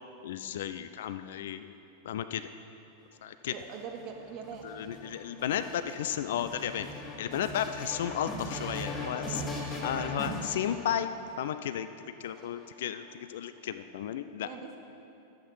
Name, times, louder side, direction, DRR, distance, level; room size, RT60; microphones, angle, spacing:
voice 1, 0.2-2.5 3.2-3.5 4.6-9.4 9.8-11.9 12.2-14.5, left 10 dB, 60° left, 11 dB, 0.3 m, -34 dB
sound 1, 3.5-11.4 12.2-13.1, left 1 dB, 25° left, 2.2 m, -39 dB
voice 2, 3.5-4.7 8.8-9.5 14.4-14.8, right 6 dB, 40° right, 2 dB, 1.3 m, -43 dB
12.0 x 8.1 x 4.7 m, 2.8 s
figure-of-eight pair, 90°, 0 cm